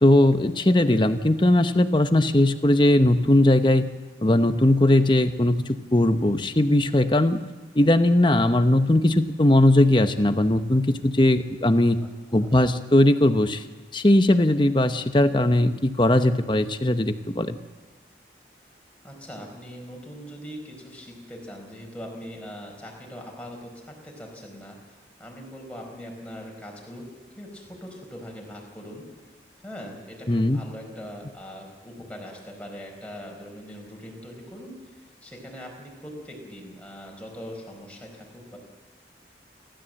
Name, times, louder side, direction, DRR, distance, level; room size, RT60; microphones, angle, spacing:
voice 1, 0.0-3.9 4.2-7.4 7.7-12.0 12.3-13.6 13.9-17.6 30.3-30.6, left 1 dB, 25° left, 9 dB, 0.9 m, -19 dB
voice 2, 12.3-12.8 19.0-24.8 25.2-27.0 27.4-29.1 29.6-38.6, equal, 5° left, 0 dB, 4.6 m, -41 dB
28.5 x 13.0 x 7.7 m, 1.4 s
head